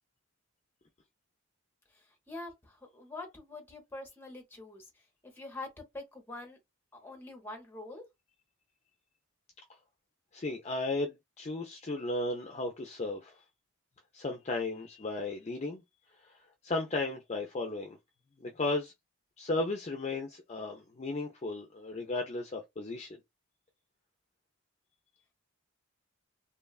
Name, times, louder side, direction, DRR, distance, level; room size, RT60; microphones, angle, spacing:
voice 1, 1.9-6.6 6.9-8.0, left 2 dB, 10° left, 0.8 m, -45 dB
voice 2, 10.3-13.4 14.1-15.8 16.2-18.0 18.4-18.9 19.4-23.2, left 2 dB, 30° left, 0.4 m, -35 dB
3.0 x 2.3 x 2.3 m
head